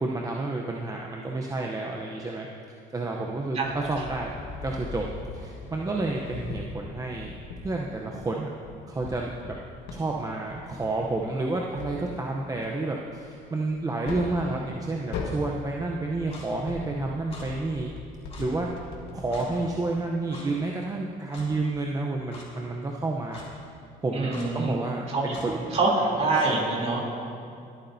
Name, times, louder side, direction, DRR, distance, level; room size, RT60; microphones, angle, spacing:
voice 1, 0.0-2.5 2.9-4.3 4.6-5.0 5.3-7.3 7.6-8.5 8.9-9.5 9.9-17.9 18.4-18.7 19.1-23.4 24.0-25.7, right 2 dB, 20° right, -1 dB, 0.7 m, -30 dB
sound 1, 3.6-7.8 8.2-10.0 10.5-12.3 12.6-14.8 15.1-15.5 15.9-19.7, left 4 dB, 90° left, 1.7 m, -39 dB
Clock, 16.3-16.5 17.3-17.5 18.3-18.5 19.3-19.5 20.3-20.5 21.3-21.5 22.3-22.5 23.3-23.5 24.3-24.5 25.3-25.5 26.3-26.5, left 3 dB, 35° left, 2.8 m, -44 dB
voice 2, 24.1-24.7 25.1-25.4 25.7-27.1, right 3 dB, 40° right, -3 dB, 3.1 m, -25 dB
25.0 x 8.6 x 2.7 m, 2.5 s
cardioid pair, 110°, 17 cm